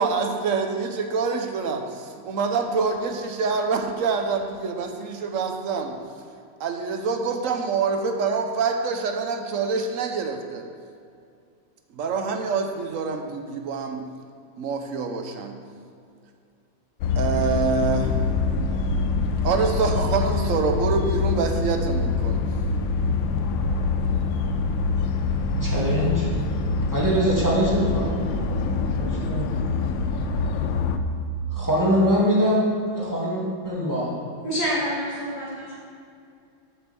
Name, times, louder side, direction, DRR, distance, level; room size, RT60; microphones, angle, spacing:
voice 1, 0.0-6.0 6.6-10.7 11.9-14.1 14.6-15.6 17.2-18.2 19.4-22.4, right 4 dB, 55° right, 4 dB, 0.9 m, -26 dB
sound 1, 17.0-31.0, left 4 dB, 80° left, 1.4 m, -25 dB
voice 2, 25.6-26.3 26.9-28.2 29.0-29.5 31.5-32.7 32.9-34.1, equal, 10° right, -6 dB, 2.1 m, -23 dB
voice 3, 34.4-35.8, equal, 60° left, -6 dB, 2.4 m, -27 dB
7.9 x 6.2 x 7.0 m, 2.3 s
omnidirectional pair, 2.1 m